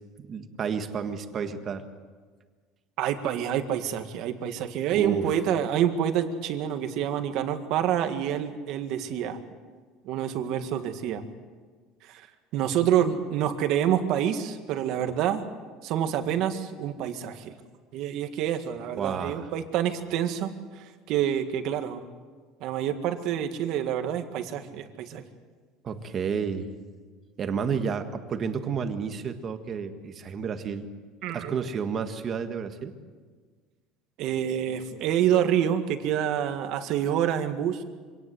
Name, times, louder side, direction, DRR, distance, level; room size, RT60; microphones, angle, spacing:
voice 1, 0.2-1.8 4.9-5.3 19.0-19.5 25.8-26.7 27.4-30.9 31.3-32.9, right 6 dB, 30° right, 7 dB, 1.6 m, -31 dB
voice 2, 3.0-9.4 10.0-11.2 12.0-12.2 12.5-15.4 15.8-17.5 17.9-22.1 22.6-25.2 31.2-31.6 34.2-37.8, right 10 dB, 55° right, 7 dB, 1.9 m, -27 dB
25.5 x 18.0 x 8.1 m, 1.5 s
cardioid pair, 155°, 0 cm